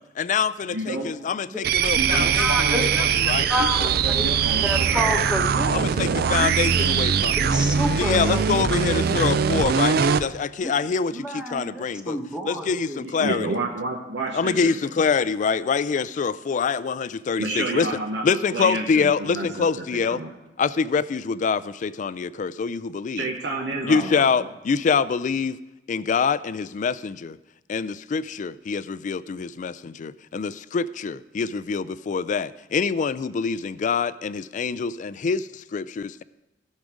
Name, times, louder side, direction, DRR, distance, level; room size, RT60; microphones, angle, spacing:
voice 1, 0.2-2.9 3.3-3.5 5.7-7.5 8.0-12.2 12.5-13.5 14.3-17.9 18.2-20.2 20.6-23.3 23.8-25.6 25.9-27.4 27.7-36.2, left 5 dB, 45° left, 18 dB, 0.3 m, -25 dB
voice 2, 0.7-1.1 1.9-2.9 3.3-5.2 13.0-14.9 17.4-18.2 18.5-20.3 23.2-24.5, right 2 dB, 75° right, 0 dB, 1.1 m, -30 dB
sound 1, 1.6-10.3, right 7 dB, 60° right, 0.4 m, -22 dB
voice 3, 2.1-3.8 4.1-4.3 4.6-5.8 6.4-6.9 7.3-9.1 10.6-10.7 11.1-13.0, equal, 5° right, 2 dB, 1.3 m, -30 dB
16.5 x 6.5 x 4.9 m, 1.0 s
head